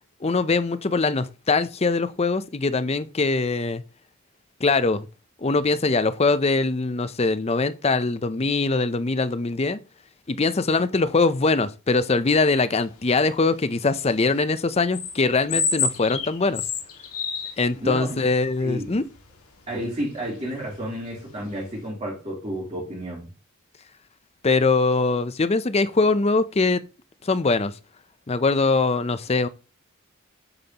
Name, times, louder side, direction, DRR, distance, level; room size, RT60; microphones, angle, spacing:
voice 1, 0.2-3.8 4.6-5.1 5.4-9.8 10.3-16.6 17.6-19.0 24.4-26.8 27.2-27.7 28.3-29.5, left 3 dB, 30° left, 0.6 m, -22 dB
sound 1, 13.1-13.5 14.0-14.6 14.8-17.5 17.9-18.0 18.9-19.4 19.6-19.7 20.1-20.3 21.0-21.2 21.4-21.7, left 6 dB, 90° left, 1.9 m, -29 dB
voice 2, 17.8-18.2 18.6-19.0 19.7-23.3, equal, 30° right, 3.5 m, -31 dB
8.8 x 7.9 x 2.9 m
head